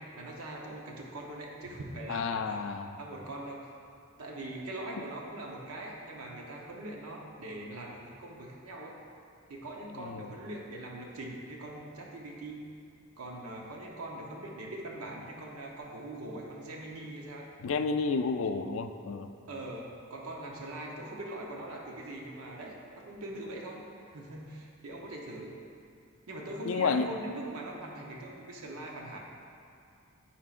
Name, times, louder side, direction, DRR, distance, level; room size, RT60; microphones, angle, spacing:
voice 1, 0.0-2.6 3.0-3.7 4.2-9.0 9.5-12.6 13.2-17.5 19.5-23.8 24.1-25.6 26.3-29.2, right 1 dB, 85° right, -1 dB, 0.8 m, -42 dB
voice 2, 2.1-3.0 10.0-10.3 17.6-19.3 26.6-27.1, left 4 dB, 65° left, 9 dB, 0.4 m, -31 dB
12.5 x 4.5 x 2.5 m, 2.4 s
head